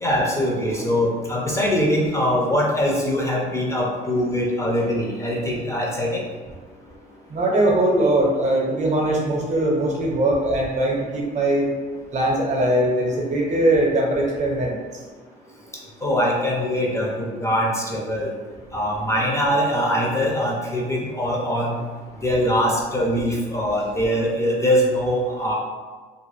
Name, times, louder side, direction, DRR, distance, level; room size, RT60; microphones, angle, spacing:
voice 1, 0.0-6.2 16.0-18.3 18.7-21.8 22.2-25.6, equal, 15° left, -3 dB, 0.5 m, -22 dB
voice 2, 7.3-11.7 12.1-14.8, right 1 dB, 45° right, -2 dB, 0.7 m, -21 dB
2.4 x 2.2 x 3.1 m, 1.4 s
cardioid pair, 110°, 17 cm